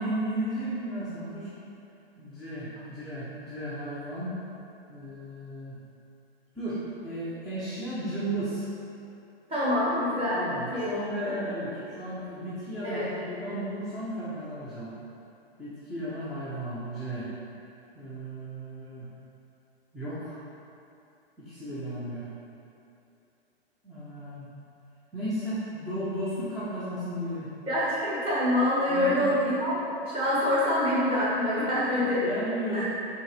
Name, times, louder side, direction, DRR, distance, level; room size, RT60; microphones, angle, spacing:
voice 1, 0.0-1.5 2.2-4.4 4.9-5.8 6.5-8.7 10.3-14.9 15.6-17.3 17.9-19.1 19.9-20.4 21.4-22.3 23.8-24.5 25.1-27.5 28.9-29.2 32.2-32.8, right 1 dB, ahead, -13 dB, 0.3 m, -34 dB
voice 2, 9.5-10.9 11.2-11.4 12.8-13.1 27.7-32.2 32.7-32.8, left 1 dB, 20° right, -9 dB, 1.4 m, -26 dB
4.4 x 3.6 x 3.2 m, 2.7 s
hypercardioid pair, 125°, 30 cm